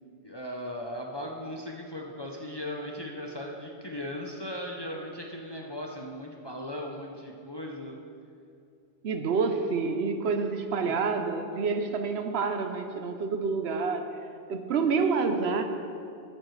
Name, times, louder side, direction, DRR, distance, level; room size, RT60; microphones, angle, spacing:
voice 1, 0.2-8.0 10.8-11.0, left 1 dB, 30° left, 0 dB, 0.6 m, -38 dB
voice 2, 9.0-14.1 14.5-15.6, right 4 dB, 70° right, 7 dB, 0.9 m, -28 dB
12.5 x 8.7 x 3.2 m, 2.5 s
omnidirectional pair, 1.2 m